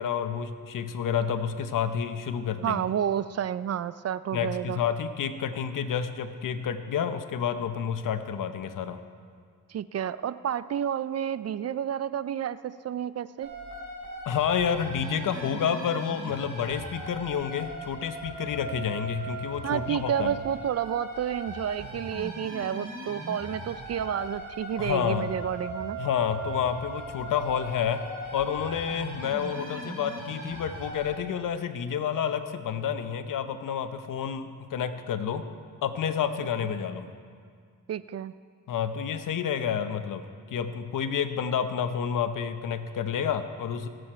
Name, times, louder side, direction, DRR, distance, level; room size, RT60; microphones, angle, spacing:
voice 1, 0.0-2.8 4.3-9.0 14.2-20.3 24.8-25.3 26.0-35.5 35.8-37.1 38.7-43.9, left 8 dB, 70° left, 10 dB, 0.9 m, -29 dB
voice 2, 2.6-4.8 9.7-13.5 19.6-26.0 37.9-38.3, right 9 dB, 50° right, 15 dB, 0.4 m, -30 dB
sound 1, 13.4-31.1, right 1 dB, 65° right, 3.9 m, -39 dB
20.5 x 7.9 x 4.5 m, 2.1 s
cardioid pair, 80°, 33 cm